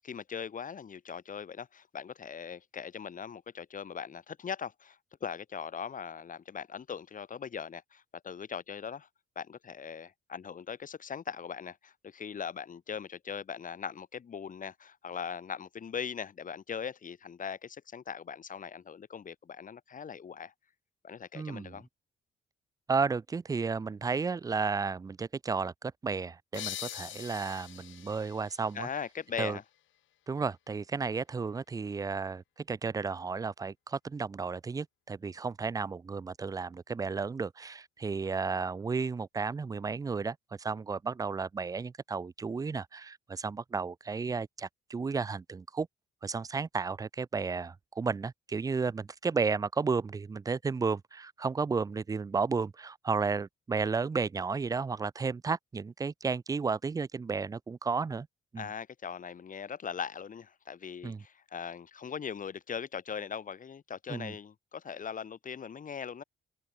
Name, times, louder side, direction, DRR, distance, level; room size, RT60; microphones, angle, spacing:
voice 1, 0.0-9.1 9.3-20.5 21.0-21.9 28.7-29.6 58.6-66.2, left 7 dB, 40° left, 1.5 m, -40 dB
voice 2, 21.3-21.8 22.9-28.9 29.4-29.6 30.3-45.9 46.2-58.3 58.5-58.7 61.0-61.2 64.1-64.3, right 5 dB, 20° right, 0.4 m, -33 dB
sound 1, 26.5-30.0, left 13 dB, 75° left, 1.2 m, -44 dB
cardioid pair, 90°, 20 cm